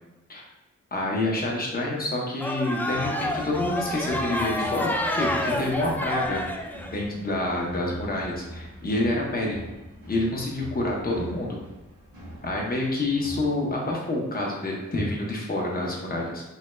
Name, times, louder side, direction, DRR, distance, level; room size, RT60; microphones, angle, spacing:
voice 1, 0.9-6.4 6.9-9.6 10.1-11.6 12.4-16.4, left 2 dB, 30° left, -2 dB, 0.8 m, -28 dB
sound 1, 2.4-6.9, left 1 dB, 5° left, 0.3 m, -29 dB
sound 2, 2.9-13.5, equal, 80° right, 1.2 m, -43 dB
3.1 x 2.7 x 2.2 m, 1.1 s
cardioid pair, 45°, 30 cm